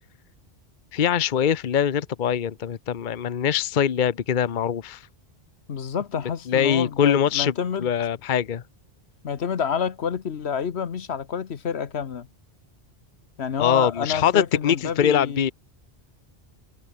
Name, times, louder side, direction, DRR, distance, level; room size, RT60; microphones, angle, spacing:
voice 1, 0.9-5.0 6.5-7.5 7.8-8.6 13.6-15.5, left 9 dB, 50° left, 0.9 m, -23 dB
voice 2, 5.7-7.9 9.2-12.3 13.4-15.5, left 7 dB, 80° left, 1.4 m, -28 dB
omnidirectional pair, 1.1 m